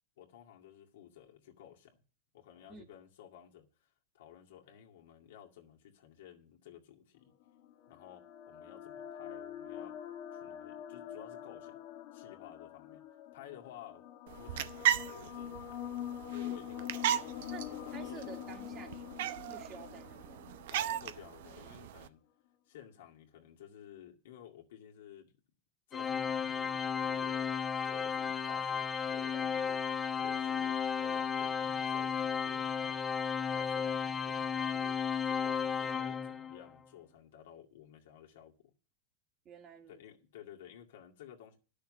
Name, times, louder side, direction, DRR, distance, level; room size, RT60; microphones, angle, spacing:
voice 1, 0.2-2.0 2.3-3.9 4.1-7.3 7.9-10.0 10.3-11.8 12.1-13.0 13.3-14.0 14.4-15.8 16.3-18.4 20.7-22.2 22.7-25.3 25.9-29.8 30.1-33.2 33.4-38.7 39.9-41.6, left 10 dB, 75° left, 2.1 m, -54 dB
sound 1, 7.4-21.5, left 11 dB, 60° left, 1.4 m, -45 dB
sound 2, 14.3-22.1, right 11 dB, 70° right, 0.7 m, -37 dB
voice 2, 17.9-20.6 29.3-29.5 39.4-40.0, right 6 dB, 35° right, 2.1 m, -51 dB
Organ, 25.9-36.7, left 7 dB, 20° left, 0.9 m, -34 dB
11.0 x 6.5 x 7.5 m
hypercardioid pair, 115°, 0 cm